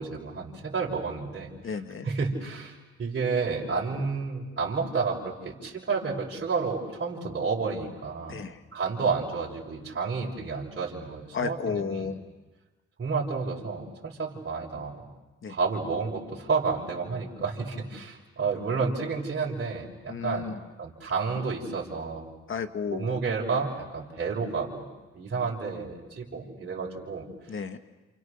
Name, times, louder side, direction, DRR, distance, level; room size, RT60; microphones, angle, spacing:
voice 1, 0.0-1.5 2.0-8.4 8.7-12.1 13.0-15.1 15.5-20.5 20.8-22.3 22.9-24.9 25.1-27.3, right 4 dB, 35° right, -4 dB, 5.9 m, -30 dB
voice 2, 1.6-2.1 8.3-8.6 11.3-12.2 15.4-15.6 20.1-20.6 22.5-23.1 27.5-27.8, left 6 dB, 40° left, 8 dB, 1.9 m, -33 dB
29.0 x 28.0 x 6.6 m, 1.2 s
cardioid pair, 90°, 30 cm